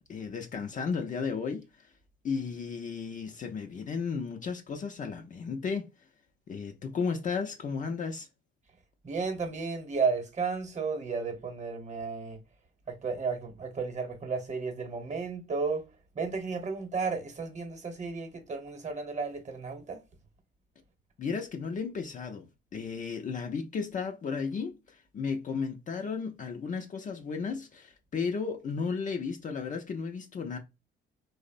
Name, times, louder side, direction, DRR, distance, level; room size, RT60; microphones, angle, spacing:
voice 1, 0.0-1.9 2.2-5.9 6.5-8.3 21.2-30.6, left 5 dB, 40° left, 0.5 m, -34 dB
voice 2, 9.0-12.4 12.9-15.8 16.1-20.0, right 4 dB, 35° right, 0.9 m, -33 dB
2.9 x 2.0 x 2.4 m
cardioid pair, 90°, 20 cm